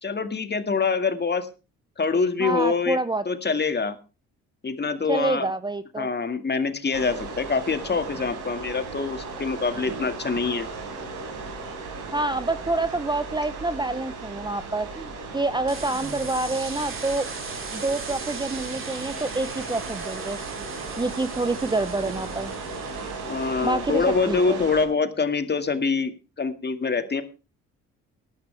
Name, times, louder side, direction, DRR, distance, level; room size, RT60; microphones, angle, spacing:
voice 1, 0.0-1.5 2.0-3.0 3.3-4.0 4.6-5.5 6.0-10.7 23.3-26.1 26.4-27.2, left 4 dB, 30° left, 9 dB, 2.0 m, -25 dB
voice 2, 2.4-3.2 5.1-6.1 12.1-17.3 17.7-20.4 21.0-22.5 23.6-24.6, right 2 dB, 15° right, 14 dB, 0.8 m, -27 dB
sound 1, 6.9-24.8, right 3 dB, 75° right, 5.0 m, -36 dB
sound 2, 15.7-23.9, right 4 dB, 40° right, 3.8 m, -38 dB
18.0 x 11.5 x 3.4 m, 0.31 s
supercardioid pair, 60°, 32 cm